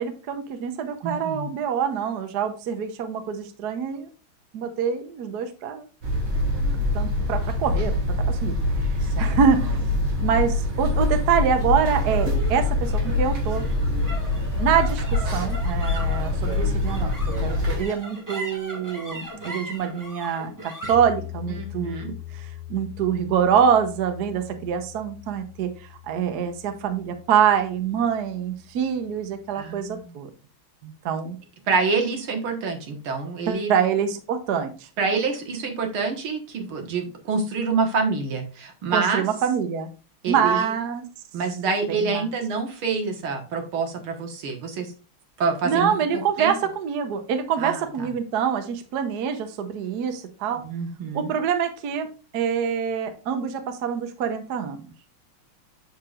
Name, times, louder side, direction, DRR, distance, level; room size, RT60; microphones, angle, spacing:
voice 1, 0.0-4.1 4.5-5.8 6.9-7.9 8.3-8.6 9.2-9.9 10.2-13.6 14.6-17.1 17.4-30.3 30.8-31.4 33.5-34.9 38.9-39.9 40.3-41.1 41.9-42.3 45.6-50.6 51.1-52.1 52.3-54.8, right 7 dB, 60° right, 7 dB, 1.3 m, -25 dB
voice 2, 1.0-1.5 9.0-9.4 10.0-10.1 21.5-22.1 29.5-30.2 31.7-33.7 35.0-39.2 40.2-40.7 41.3-44.9 45.4-46.6 47.6-48.1 50.6-51.4, right 4 dB, 80° right, 4 dB, 2.3 m, -27 dB
sound 1, 6.0-17.8, left 2 dB, 40° right, 2.4 m, -24 dB
sound 2, 11.8-28.4, left 2 dB, 10° right, 2.4 m, -39 dB
7.6 x 6.7 x 2.4 m, 0.34 s
omnidirectional pair, 2.3 m